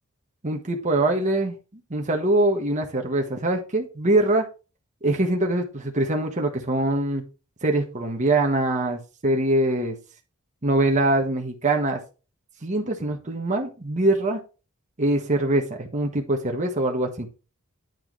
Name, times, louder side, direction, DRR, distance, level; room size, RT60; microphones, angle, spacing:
voice 1, 0.4-1.5 1.9-4.5 5.0-7.2 7.6-10.0 10.6-12.0 12.6-14.4 15.0-17.3, right 2 dB, 35° right, 2 dB, 1.4 m, -23 dB
9.4 x 4.7 x 4.5 m, 0.32 s
head